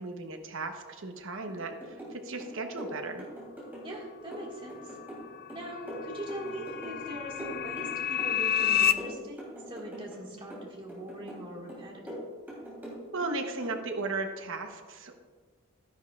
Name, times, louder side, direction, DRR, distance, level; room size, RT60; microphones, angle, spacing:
voice 1, 0.0-3.3 13.1-15.2, right 3 dB, 65° right, 5 dB, 1.0 m, -36 dB
sound 1, 1.6-2.2 2.4-4.0 4.3-7.1 7.4-8.3 8.6-10.2 10.5-11.4 11.7-13.3 13.6-13.8, equal, 10° right, 3.1 m, -42 dB
voice 2, 3.8-5.0 5.5-12.2, right 1 dB, 25° right, -2 dB, 1.8 m, -41 dB
sound 2, 4.6-8.9, left 10 dB, 45° left, 0.4 m, -30 dB
11.5 x 10.5 x 2.4 m, 1.5 s
head